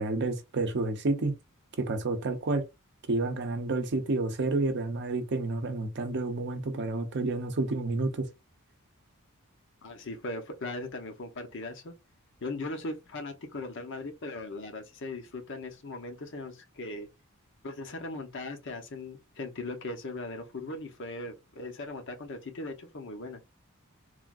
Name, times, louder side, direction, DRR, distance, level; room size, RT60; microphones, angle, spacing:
voice 1, 0.0-1.4 1.8-2.6 3.1-8.2, right 2 dB, 55° right, 0.6 m, -30 dB
voice 2, 9.8-11.9 12.4-17.1 17.6-23.4, left 2 dB, 60° left, 0.8 m, -39 dB
3.2 x 2.4 x 2.3 m
head